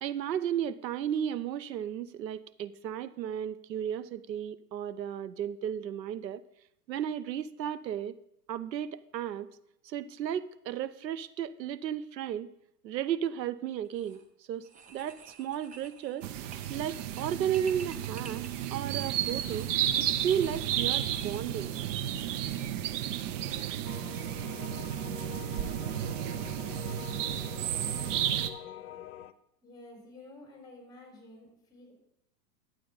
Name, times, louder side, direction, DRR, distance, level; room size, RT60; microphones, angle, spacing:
voice 1, 0.0-6.4 6.9-8.1 8.5-9.5 9.8-12.5 12.8-14.2 14.5-16.3 16.7-18.4 18.7-19.7 20.0-21.7, right 9 dB, 85° right, 15 dB, 0.7 m, -34 dB
sound 1, 13.8-14.2 14.6-21.9, right 5 dB, 15° right, 0.6 m, -52 dB
sound 2, 16.2-28.5, right 11 dB, 50° right, 0.8 m, -33 dB
sound 3, 23.8-29.3, left 11 dB, 65° left, 0.8 m, -45 dB
voice 2, 29.6-31.9, left 2 dB, 10° left, -1 dB, 4.2 m, -51 dB
12.0 x 8.4 x 3.9 m, 0.78 s
hypercardioid pair, 110°, 49 cm